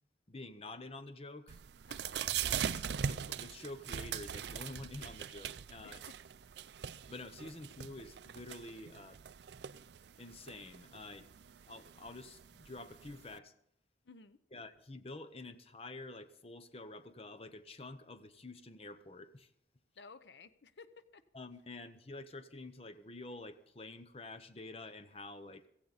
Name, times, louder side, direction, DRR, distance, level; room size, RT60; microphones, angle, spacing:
voice 1, 0.3-1.6 2.4-6.0 7.1-9.2 10.2-11.3 11.7-13.5 14.5-19.5 21.3-25.7, left 2 dB, 35° left, 11 dB, 0.8 m, -48 dB
sound 1, 1.5-13.4, right 8 dB, 75° right, 0.4 m, -42 dB
voice 2, 1.9-2.3 5.8-6.1 14.0-14.4 20.0-21.2, left 4 dB, 85° left, 13 dB, 0.7 m, -55 dB
16.0 x 15.5 x 4.1 m, 0.71 s
head